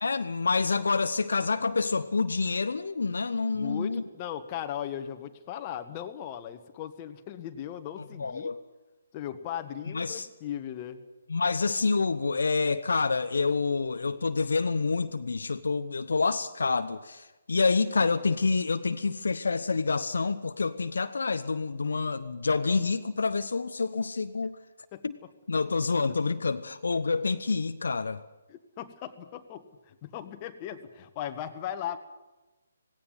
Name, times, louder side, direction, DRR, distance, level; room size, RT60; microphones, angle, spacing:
voice 1, 0.0-4.0 8.2-8.6 9.9-10.3 11.3-24.6 25.0-25.2 25.5-28.2, left 4 dB, 65° left, 9 dB, 1.0 m, -27 dB
voice 2, 3.5-8.5 9.1-11.0 24.9-25.3 28.5-32.0, left 10 dB, 25° left, 7 dB, 1.6 m, -38 dB
17.5 x 17.5 x 9.4 m, 1.1 s
figure-of-eight pair, 140°, 0 cm